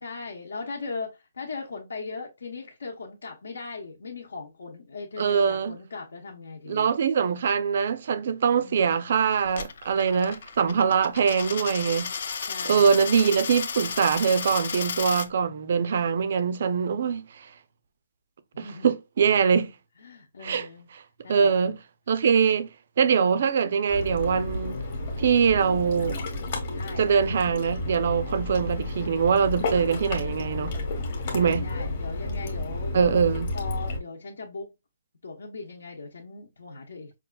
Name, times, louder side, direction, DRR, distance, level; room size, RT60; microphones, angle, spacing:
voice 1, 0.0-6.9 8.5-9.0 12.5-13.0 18.5-18.9 20.0-20.9 21.2-21.5 23.1-23.4 26.7-27.1 31.3-33.2 33.5-34.7 35.2-37.2, left 4 dB, 70° left, 0.9 m, -39 dB
voice 2, 5.2-5.7 6.7-12.1 12.7-17.5 18.6-19.7 20.4-20.7 21.3-21.8 22.1-22.7 23.0-24.8 25.2-26.2 27.0-30.7 31.3-31.6 32.9-33.5, right 6 dB, 40° right, 0.4 m, -23 dB
Coin (dropping), 9.5-15.3, left 6 dB, 45° left, 0.4 m, -33 dB
Ocean, 23.9-34.0, left 2 dB, 30° left, 1.0 m, -31 dB
5.2 x 2.4 x 2.2 m
hypercardioid pair, 175°, 0 cm